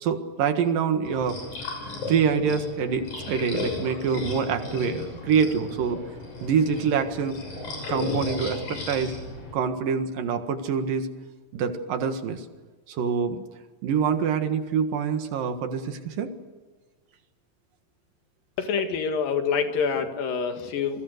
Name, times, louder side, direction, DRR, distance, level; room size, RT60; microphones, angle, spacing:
voice 1, 0.0-1.7 2.1-6.0 6.4-7.4 7.9-9.1 9.5-11.1 11.5-12.4 12.9-13.4 13.8-16.3, right 6 dB, 75° right, 7 dB, 3.3 m, -25 dB
sound 1, 1.0-9.5, left 2 dB, 55° left, 7.6 m, -35 dB
voice 2, 18.6-21.0, left 6 dB, 75° left, 6 dB, 3.6 m, -26 dB
27.5 x 23.0 x 6.6 m, 1.3 s
omnidirectional pair, 4.1 m